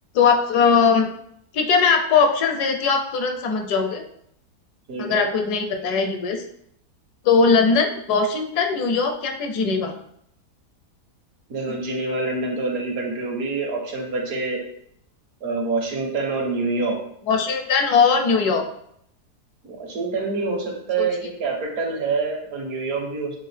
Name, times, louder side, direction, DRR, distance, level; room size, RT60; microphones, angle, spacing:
voice 1, 0.1-1.1 1.5-4.0 5.0-6.4 7.2-9.9 11.7-11.8 17.3-18.6 21.0-21.1, left 5 dB, 75° left, 4 dB, 1.2 m, -20 dB
voice 2, 4.9-5.2 11.5-14.6 15.4-17.0 19.6-23.4, right 3 dB, 65° right, 1 dB, 1.3 m, -26 dB
6.6 x 2.4 x 3.2 m, 0.70 s
omnidirectional pair, 1.7 m